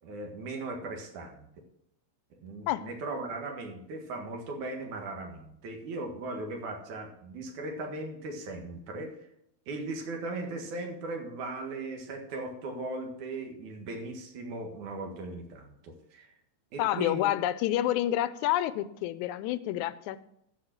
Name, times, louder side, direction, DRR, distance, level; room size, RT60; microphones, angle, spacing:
voice 1, 0.0-1.5 2.3-9.2 9.7-16.3 16.7-17.4, right 2 dB, 85° right, 3 dB, 3.1 m, -38 dB
voice 2, 16.8-20.3, left 13 dB, 85° left, 15 dB, 2.0 m, -29 dB
14.0 x 5.2 x 6.0 m, 0.77 s
omnidirectional pair, 3.3 m